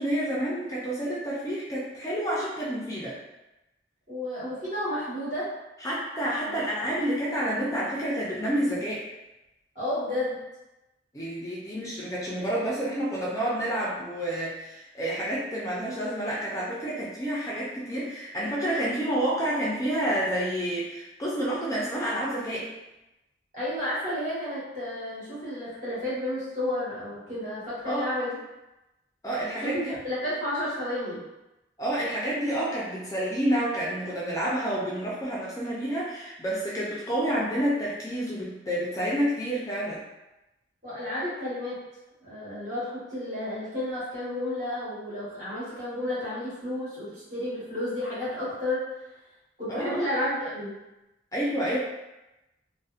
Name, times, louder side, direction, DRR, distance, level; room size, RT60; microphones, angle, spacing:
voice 1, 0.0-3.2 5.8-9.0 11.1-22.7 27.9-28.1 29.2-30.0 31.8-40.0 49.7-50.0 51.3-51.8, right 1 dB, 20° left, -6 dB, 0.3 m, -29 dB
voice 2, 4.1-5.5 6.5-6.9 9.7-10.4 23.5-28.4 29.6-31.2 40.8-41.8 42.2-48.9 49.6-50.8, left 1 dB, 45° right, -10 dB, 1.3 m, -31 dB
2.7 x 2.0 x 2.3 m, 0.97 s
head